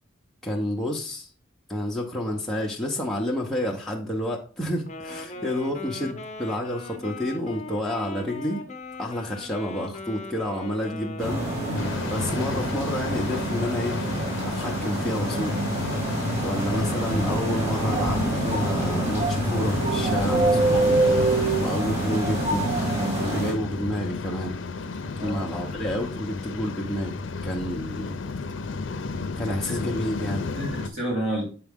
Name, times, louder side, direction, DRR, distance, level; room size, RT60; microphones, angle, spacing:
voice 1, 0.4-1.3 1.7-8.6 9.0-11.5 12.1-14.0 14.5-15.6 16.4-21.0 21.6-22.6 23.2-24.6 25.2-28.2 29.4-30.5, equal, ahead, -3 dB, 0.8 m, -29 dB
Wind instrument woodwind instrument, 4.8-12.0, left 2 dB, 35° left, 0.8 m, -39 dB
sound 1, 11.2-23.5, right 2 dB, 35° right, 2.8 m, -26 dB
Waves surf, 11.8-30.9, left 3 dB, 70° left, 0.5 m, -33 dB
voice 2, 25.0-25.5 29.5-29.8 30.5-31.4, right 1 dB, 75° right, -3 dB, 3.1 m, -31 dB
6.9 x 4.7 x 3.6 m, 0.39 s
head